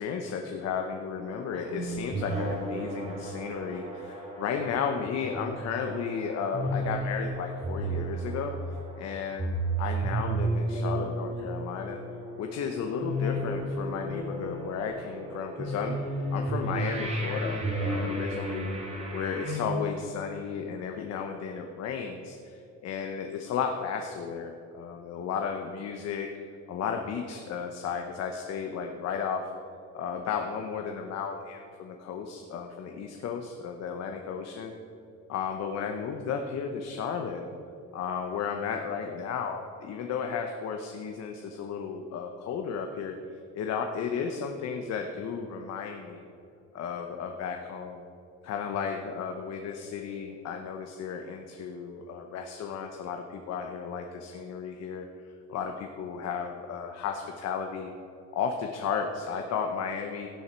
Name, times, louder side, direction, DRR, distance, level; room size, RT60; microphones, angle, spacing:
voice 1, 0.0-8.5 9.0-12.0 12.4-16.0 16.3-18.7 19.1-26.3 26.7-29.4 29.9-34.7 35.3-37.5 37.9-43.1 43.5-46.2 46.7-48.0 48.4-55.0 55.5-57.9 58.3-60.3, left 6 dB, 60° left, 4 dB, 0.9 m, -34 dB
sound 1, 1.2-19.6, right 1 dB, 20° right, 2.3 m, -33 dB
16.0 x 7.1 x 4.5 m, 2.7 s
cardioid pair, 145°, 29 cm